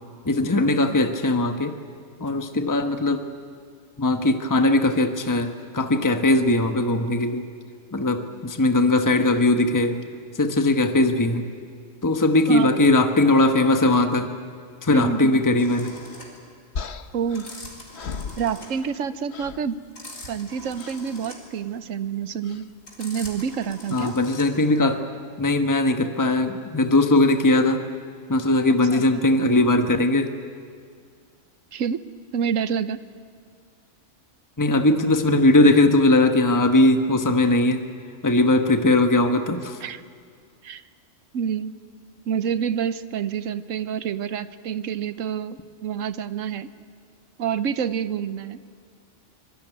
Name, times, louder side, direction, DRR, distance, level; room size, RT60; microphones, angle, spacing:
voice 1, 0.2-1.8 2.2-3.2 4.0-7.5 7.9-10.0 10.3-11.4 12.0-14.3 14.8-16.0 23.9-25.0 25.4-27.8 28.3-30.3 34.6-37.8 38.2-39.8, left 2 dB, 15° left, 6 dB, 1.2 m, -19 dB
voice 2, 14.9-15.4 17.1-17.5 18.4-19.8 20.3-22.7 23.0-24.1 28.9-29.0 31.7-32.0 32.3-33.0 39.8-40.0 40.6-40.8 41.3-41.7 42.3-46.7 47.4-48.6, right 7 dB, 80° right, 13 dB, 1.2 m, -27 dB
sound 1, 15.6-24.8, left 1 dB, 85° left, 4.4 m, -43 dB
sound 2, 16.8-19.0 19.3-19.7 20.8-21.1 22.4-22.7, left 5 dB, 55° left, 1.2 m, -36 dB
25.0 x 20.5 x 9.2 m, 2.1 s
omnidirectional pair, 1.3 m